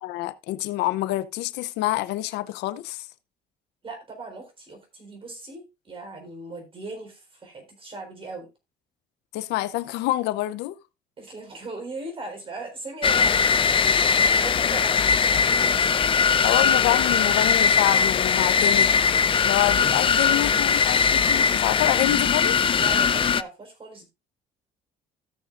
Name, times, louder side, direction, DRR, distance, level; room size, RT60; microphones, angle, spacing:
voice 1, 0.0-3.1 9.3-10.8 16.4-19.0 19.4-22.6, left 16 dB, 90° left, 0.7 m, -27 dB
voice 2, 3.8-8.5 11.2-16.9 22.7-24.1, right 2 dB, 30° right, 4.0 m, -39 dB
sound 1, 13.0-23.4, left 6 dB, 30° left, 0.5 m, -20 dB
16.5 x 6.4 x 2.5 m
cardioid pair, 110°, 17 cm